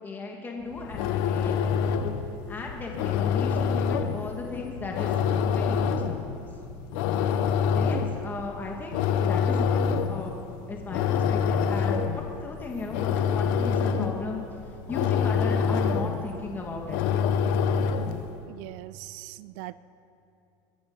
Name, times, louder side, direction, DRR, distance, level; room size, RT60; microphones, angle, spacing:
voice 1, 0.0-1.9 2.5-5.1 5.5-6.4 7.7-10.4 10.7-14.4 14.9-17.1, left 3 dB, 20° left, 0 dB, 1.9 m, -36 dB
sound 1, 0.7-18.3, left 6 dB, 75° left, 1.0 m, -26 dB
voice 2, 18.5-19.7, right 19 dB, 70° right, 17 dB, 0.4 m, -41 dB
21.5 x 12.0 x 5.5 m, 2.7 s
cardioid pair, 145°, 11 cm